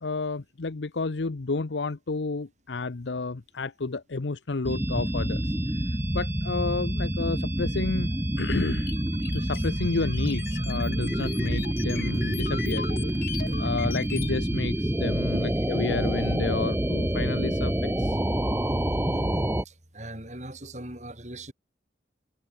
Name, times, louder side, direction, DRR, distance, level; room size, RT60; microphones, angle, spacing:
voice 1, 0.0-5.5 6.1-8.1 8.4-8.9 9.3-12.9 13.6-18.2, left 3 dB, 80° left, 0.8 m, -31 dB
sound 1, 4.6-19.6, right 1 dB, 10° right, 0.8 m, -27 dB
sound 2, 8.9-14.4, left 6 dB, 50° left, 5.4 m, -39 dB
voice 2, 19.6-21.5, right 1 dB, 40° right, 5.0 m, -39 dB
head